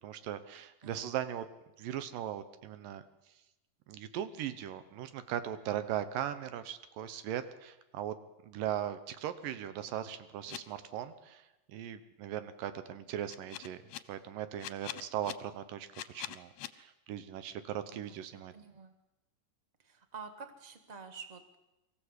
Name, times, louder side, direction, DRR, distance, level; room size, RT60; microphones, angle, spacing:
voice 1, 0.0-1.5 1.8-3.0 3.9-8.2 8.4-13.8 14.1-18.5, right 11 dB, 85° right, 12 dB, 2.7 m, -39 dB
sound 1, 10.5-10.6 13.3-14.0 14.6-15.3 15.9-16.7, left 13 dB, 70° left, 1.8 m, -42 dB
voice 2, 18.5-18.9 19.9-21.6, right 5 dB, 25° right, 7 dB, 0.8 m, -48 dB
23.5 x 15.0 x 8.2 m, 0.98 s
omnidirectional pair, 3.8 m